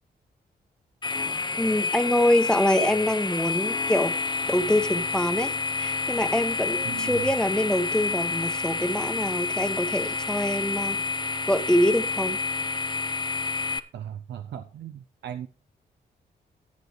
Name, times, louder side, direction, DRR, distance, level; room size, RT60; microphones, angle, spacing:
sound 1, 1.0-13.8, left 4 dB, 25° left, 1.0 m, -29 dB
voice 1, 1.6-4.2 4.5-11.0 11.5-12.4, left 1 dB, 5° left, 8 dB, 1.4 m, -25 dB
voice 2, 6.8-7.2 13.9-15.5, right 10 dB, 85° right, 9 dB, 0.7 m, -37 dB
15.0 x 8.3 x 3.3 m, 0.36 s
cardioid pair, 70°, 18 cm